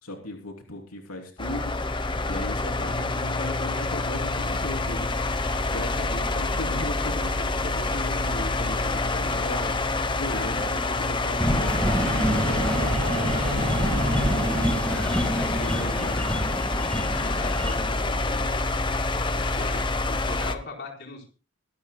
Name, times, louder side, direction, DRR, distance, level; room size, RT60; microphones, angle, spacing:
voice 1, 0.0-5.2 5.7-14.5 15.0-16.2, left 1 dB, 80° left, 1 dB, 3.2 m, -37 dB
sound 1, 1.4-20.6, left 2 dB, 20° left, 0.9 m, -27 dB
voice 2, 10.3-10.8 14.8-18.7 19.2-21.3, left 2 dB, 50° left, 0 dB, 4.3 m, -40 dB
sound 2, 11.4-17.8, equal, 5° left, 1.6 m, -27 dB
Wind instrument woodwind instrument, 11.6-15.3, right 2 dB, 40° right, 1.6 m, -33 dB
24.0 x 12.0 x 2.2 m, 0.34 s
head